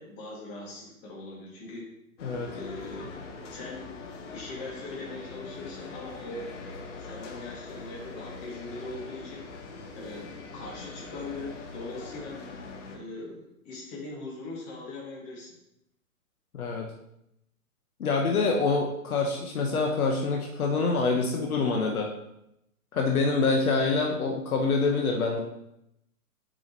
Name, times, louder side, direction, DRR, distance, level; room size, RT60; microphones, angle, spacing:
voice 1, 0.0-1.9 2.5-3.2 3.5-3.9 4.3-6.5 7.0-9.5 9.9-12.4 12.9-15.5, left 2 dB, 25° left, -3 dB, 2.2 m, -41 dB
voice 2, 2.2-2.5 16.5-16.9 18.0-22.1 22.9-25.4, left 4 dB, 70° left, 1 dB, 1.2 m, -26 dB
sound 1, 2.2-13.0, left 4 dB, 55° left, 1.3 m, -42 dB
6.8 x 5.4 x 3.0 m, 0.81 s
hypercardioid pair, 125°, 44 cm